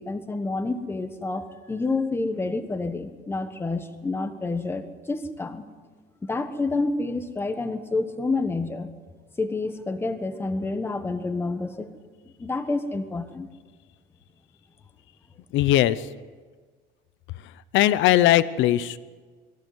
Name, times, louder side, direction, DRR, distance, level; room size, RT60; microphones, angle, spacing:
voice 1, 0.0-5.6 6.2-8.9 9.4-11.9 12.4-13.5, left 3 dB, 10° left, 8 dB, 1.3 m, -28 dB
voice 2, 15.5-16.1 17.4-19.0, left 13 dB, 70° left, 16 dB, 0.9 m, -20 dB
22.0 x 15.0 x 9.5 m, 1.5 s
cardioid pair, 165°, 21 cm